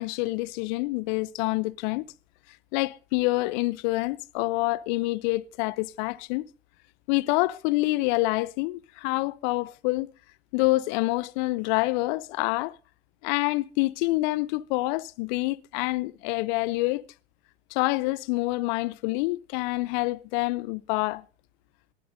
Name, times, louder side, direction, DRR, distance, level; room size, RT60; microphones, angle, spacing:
voice 1, 0.0-2.0 2.7-6.5 7.1-10.1 10.5-12.8 13.2-17.0 17.7-21.2, left 21 dB, 45° left, 0.6 m, -27 dB
19.5 x 10.5 x 2.6 m
figure-of-eight pair, 85°, 32 cm